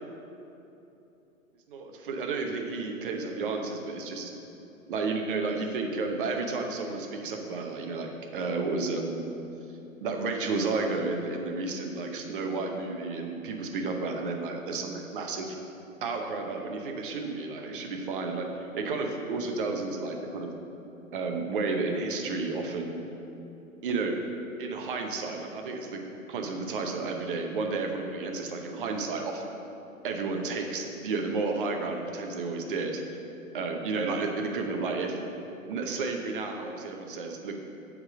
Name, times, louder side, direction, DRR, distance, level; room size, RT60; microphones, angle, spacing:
voice 1, 1.7-4.3 4.9-9.2 10.0-15.6 16.0-18.5 18.7-20.5 21.1-23.0 23.8-24.1 24.6-26.0 26.3-29.5 30.0-33.0 33.5-35.2 35.7-37.6, right 3 dB, 40° right, 3 dB, 0.8 m, -32 dB
7.9 x 3.7 x 6.5 m, 3.0 s
hypercardioid pair, 150°, 42 cm